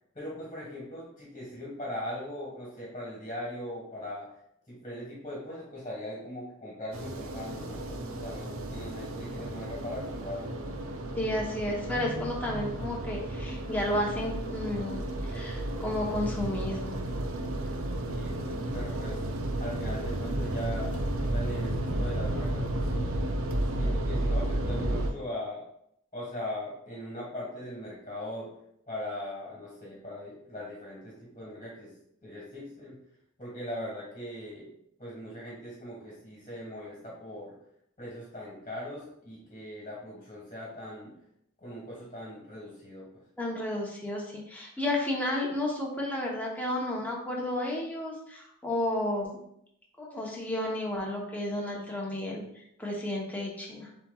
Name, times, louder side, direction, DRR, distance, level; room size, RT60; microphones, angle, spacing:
voice 1, 0.1-4.3 4.7-10.5 18.0-19.2 19.6-20.9 21.2-23.2 23.7-25.7 26.1-28.5 28.9-31.9 32.2-33.0 33.4-34.7 35.0-37.5 38.0-41.1 41.6-43.2, left 1 dB, 25° left, -6 dB, 1.5 m, -40 dB
sound 1, 6.9-25.1, right 1 dB, 85° right, 0.6 m, -32 dB
voice 2, 11.2-15.0 15.3-17.0 43.4-49.4 50.0-53.9, left 1 dB, 10° left, -2 dB, 0.8 m, -32 dB
7.4 x 3.0 x 2.3 m, 0.75 s
head